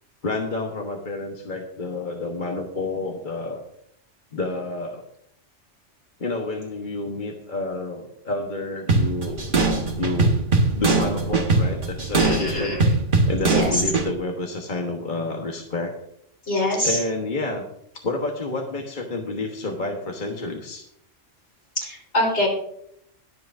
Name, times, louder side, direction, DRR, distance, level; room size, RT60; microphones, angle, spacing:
voice 1, 0.2-3.6 4.3-5.0 6.2-9.4 10.0-10.4 10.7-12.8 13.3-15.9 16.7-17.6 18.0-20.9, left 2 dB, 45° left, 1 dB, 1.3 m, -29 dB
sound 1, 8.9-14.1, right 3 dB, 45° right, 1.5 m, -21 dB
voice 2, 12.2-12.9 13.5-13.8 16.5-17.0 21.8-22.5, left 1 dB, 65° left, -1 dB, 4.0 m, -24 dB
21.0 x 7.6 x 2.6 m, 0.71 s
omnidirectional pair, 1.2 m